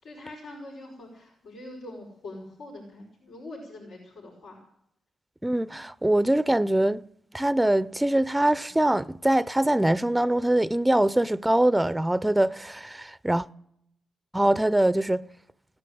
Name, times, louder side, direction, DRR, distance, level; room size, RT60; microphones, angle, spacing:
voice 1, 0.0-4.6, left 2 dB, 85° left, 5.3 m, -43 dB
voice 2, 5.4-7.0 7.3-13.5 14.3-15.2, right 1 dB, 10° right, 0.5 m, -23 dB
17.5 x 10.5 x 7.8 m
cardioid pair, 75°, 0 cm